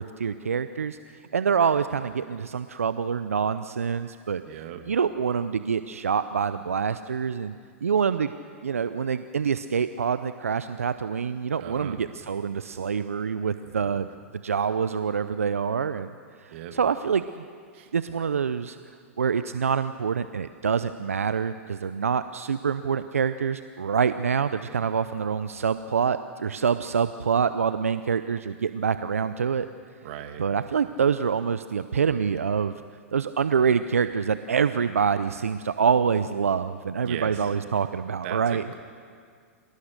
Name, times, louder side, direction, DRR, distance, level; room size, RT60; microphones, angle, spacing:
voice 1, 0.0-4.4 4.9-7.5 7.8-8.3 8.6-14.1 14.3-16.1 16.4-17.5 17.9-18.8 19.2-29.7 30.4-32.8 33.1-38.6, right 6 dB, 90° right, 12 dB, 0.6 m, -26 dB
voice 2, 4.4-4.8 11.6-12.0 13.6-14.0 16.5-16.8 17.7-17.9 30.0-30.5 37.0-37.5 38.2-38.7, right 10 dB, 60° right, 6 dB, 2.3 m, -38 dB
27.5 x 18.0 x 6.6 m, 2.1 s
hypercardioid pair, 110°, 7 cm